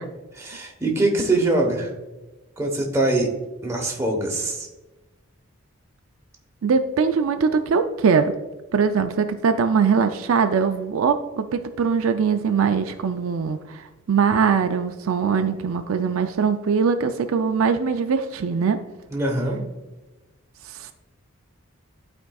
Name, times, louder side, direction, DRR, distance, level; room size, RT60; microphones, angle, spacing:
voice 1, 0.3-1.9 2.6-3.3 3.6-4.7 19.1-19.6, right 2 dB, 10° right, 0 dB, 0.9 m, -23 dB
voice 2, 6.6-8.3 8.7-18.8 20.7-20.9, right 6 dB, 65° right, 7 dB, 0.4 m, -21 dB
12.0 x 4.5 x 2.3 m, 1.1 s
head